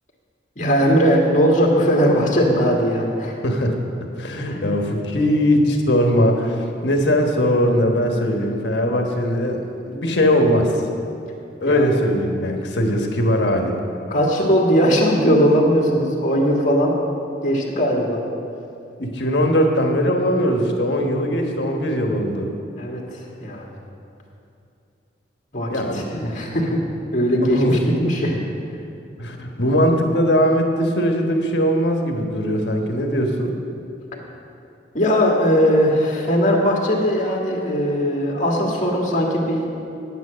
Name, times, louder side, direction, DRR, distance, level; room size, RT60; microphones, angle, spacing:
voice 1, 0.6-3.4 4.5-4.6 11.7-11.9 14.1-16.9 17.4-18.2 22.8-23.7 25.5-26.8 27.1-28.4 34.9-39.7, equal, 40° left, -1 dB, 1.8 m, -19 dB
voice 2, 3.4-3.8 4.2-10.8 11.6-13.8 19.0-22.5 25.7-26.2 27.4-27.8 28.3-28.4 29.2-33.5, equal, 65° left, 2 dB, 1.3 m, -20 dB
9.3 x 9.3 x 6.3 m, 2.6 s
head